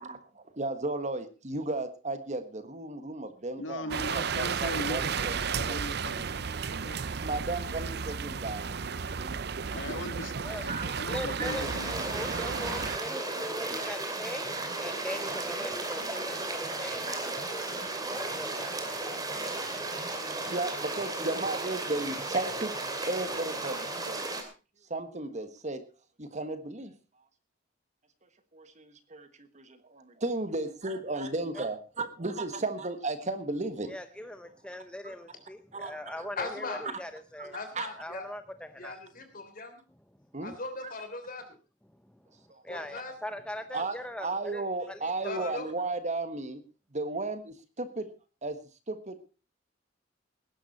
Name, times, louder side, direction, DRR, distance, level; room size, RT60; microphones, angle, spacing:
voice 1, 0.0-5.3 5.6-5.9 7.1-8.8 9.1-9.3 10.7-11.8 12.1-13.9 14.5-14.6 15.0-15.2 15.6-16.5 17.0-17.4 17.8-17.9 18.6-18.7 20.2-24.3 24.9-25.8 26.2-26.9 28.5-33.9 35.0-35.1 35.7-36.3 37.4-37.5 37.7-37.9 40.3-40.5 42.5-42.6 43.7-43.9 44.2-46.6 46.9-48.1 48.4-48.6 48.9-49.2, right 2 dB, 40° right, 10 dB, 1.4 m, -35 dB
voice 2, 3.6-7.0 9.7-11.9, left 2 dB, 90° left, 10 dB, 1.6 m, -39 dB
sound 1, 3.9-13.0, right 6 dB, 60° right, 0.7 m, -33 dB
voice 3, 10.4-14.5 14.8-20.2 31.5-31.6 33.9-37.6 38.0-39.0 41.9-45.5, left 1 dB, 5° left, 9 dB, 0.7 m, -41 dB
sound 2, 11.4-24.4, right 2 dB, 20° right, 2.8 m, -35 dB
voice 4, 36.4-36.9 37.5-38.3 38.8-39.8 40.4-41.6 42.7-43.1 45.2-45.7, left 3 dB, 50° left, 8 dB, 3.4 m, -39 dB
19.5 x 11.0 x 4.2 m, 0.33 s
head